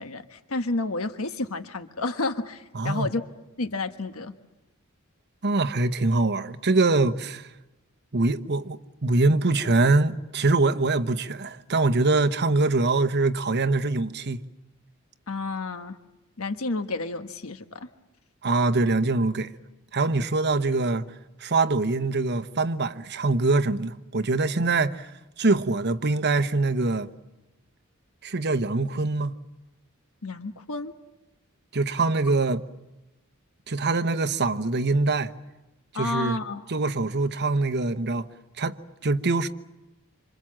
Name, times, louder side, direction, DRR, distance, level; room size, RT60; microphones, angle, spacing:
voice 1, 0.0-3.2 3.6-4.3 15.3-16.0 16.4-17.9 30.2-30.9 35.9-36.6, left 2 dB, 80° left, 1.3 m, -30 dB
voice 2, 2.7-3.1 5.4-7.5 8.1-14.4 18.4-19.5 19.9-21.1 21.4-25.1 25.4-27.1 28.2-29.4 31.7-32.6 33.7-35.3 35.9-36.4 36.7-38.3 38.6-38.8 39.0-39.5, right 3 dB, 55° right, 1.1 m, -24 dB
27.0 x 26.5 x 7.5 m
head